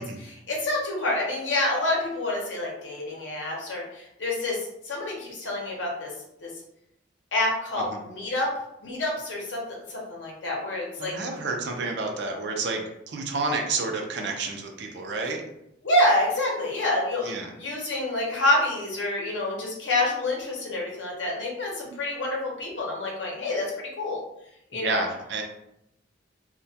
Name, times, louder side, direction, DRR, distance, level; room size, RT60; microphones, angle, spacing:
voice 1, 0.0-4.6 4.8-6.1 6.4-6.5 7.3-8.5 8.8-9.6 9.9-11.2 15.8-24.2 24.7-25.1, left 1 dB, 70° left, -2 dB, 0.8 m, -27 dB
voice 2, 11.0-15.4 17.2-17.5 24.7-25.4, right 3 dB, 60° right, 2 dB, 0.4 m, -30 dB
2.2 x 2.2 x 2.6 m, 0.82 s
head